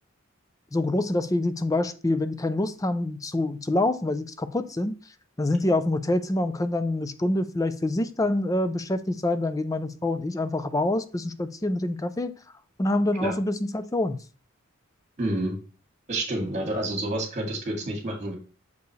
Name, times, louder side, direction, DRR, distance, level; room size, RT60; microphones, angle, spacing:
voice 1, 0.7-5.0 5.4-12.3 12.8-14.2, left 2 dB, 15° left, 0.4 m, -26 dB
voice 2, 15.2-15.5 16.1-18.3, right 1 dB, 35° right, 2.0 m, -29 dB
6.8 x 4.6 x 3.2 m
head